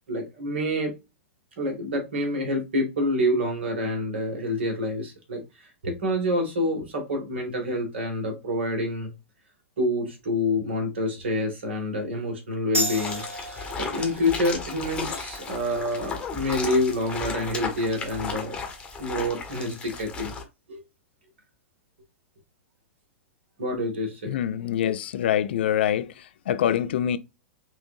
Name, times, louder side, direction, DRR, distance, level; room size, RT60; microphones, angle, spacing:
voice 1, 0.1-0.9 1.6-9.1 9.8-13.2 13.8-18.6 19.0-20.3 20.7-20.8 23.6-24.4 24.8-25.0, left 1 dB, 60° right, 1.8 m, -27 dB
sound 1, 12.7-19.8, right 1 dB, 75° right, 1.2 m, -37 dB
sound 2, 12.9-20.4, left 5 dB, 15° left, 1.1 m, -35 dB
voice 2, 24.3-27.2, left 10 dB, 55° left, 0.4 m, -25 dB
5.6 x 2.6 x 2.6 m
figure-of-eight pair, 100°, 7 cm